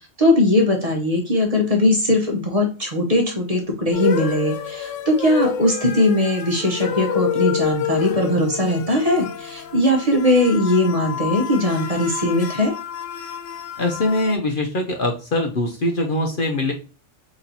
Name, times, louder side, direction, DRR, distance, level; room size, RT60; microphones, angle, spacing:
voice 1, 0.2-12.7, left 1 dB, 35° right, 1 dB, 0.9 m, -19 dB
sound 1, 3.9-14.3, left 9 dB, 85° left, 1.0 m, -28 dB
voice 2, 13.8-16.7, left 2 dB, 50° left, 3 dB, 0.8 m, -22 dB
4.2 x 3.0 x 4.1 m, 0.33 s
omnidirectional pair, 1.3 m